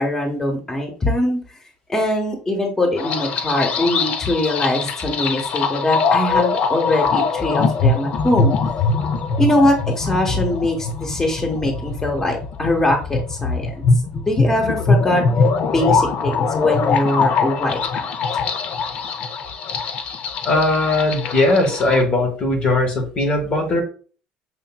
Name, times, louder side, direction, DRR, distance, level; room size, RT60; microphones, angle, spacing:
voice 1, 0.0-1.4 1.9-8.5 9.4-13.8 14.1-15.2 15.7-18.1, left 1 dB, 20° left, 1 dB, 1.0 m, -22 dB
sound 1, 3.0-22.0, left 4 dB, 55° left, 0.5 m, -22 dB
voice 2, 20.4-23.8, left 2 dB, 40° left, 3 dB, 1.0 m, -19 dB
5.7 x 2.5 x 2.2 m, 0.39 s
supercardioid pair, 95°, 3 cm